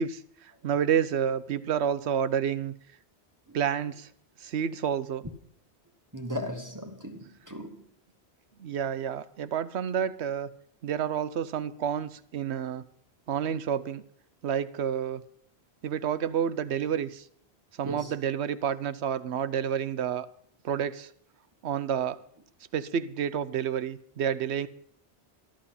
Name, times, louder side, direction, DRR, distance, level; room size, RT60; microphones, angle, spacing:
voice 1, 0.0-2.7 3.5-4.1 4.4-5.2 8.6-10.5 10.8-12.8 13.3-14.0 14.4-15.2 15.8-17.3 17.8-20.3 20.6-21.1 21.6-22.2 22.7-24.7, right 8 dB, 85° right, 1.0 m, -29 dB
voice 2, 6.1-7.8 17.8-18.1, left 1 dB, 20° right, 1.1 m, -37 dB
13.0 x 11.5 x 5.6 m
omnidirectional pair, 1.1 m